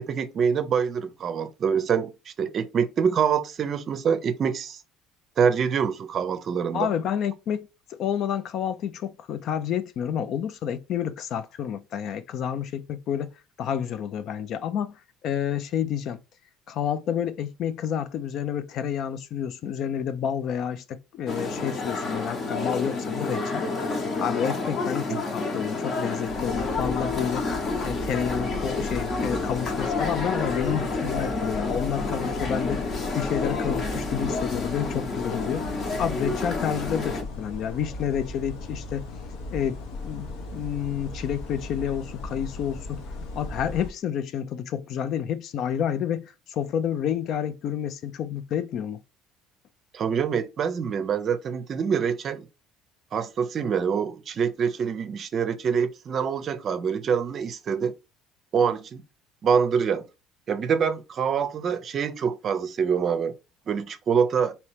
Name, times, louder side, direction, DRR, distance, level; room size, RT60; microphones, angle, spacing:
voice 1, 0.0-4.8 5.4-6.9 25.1-25.2 49.9-52.5 53.1-57.9 58.5-59.0 59.4-60.0 60.5-63.3 63.7-64.5, right 6 dB, 40° right, 0.5 m, -25 dB
voice 2, 6.7-13.3 13.6-14.9 15.2-16.2 16.7-23.7 24.2-27.5 27.8-39.1 39.5-40.3 40.5-43.0 43.3-49.0, left 9 dB, 55° left, 0.4 m, -29 dB
sound 1, 21.3-37.2, left 3 dB, 35° left, 0.9 m, -29 dB
sound 2, 26.3-43.9, left 2 dB, 80° left, 1.0 m, -37 dB
4.3 x 2.9 x 3.3 m
cardioid pair, 140°, 0 cm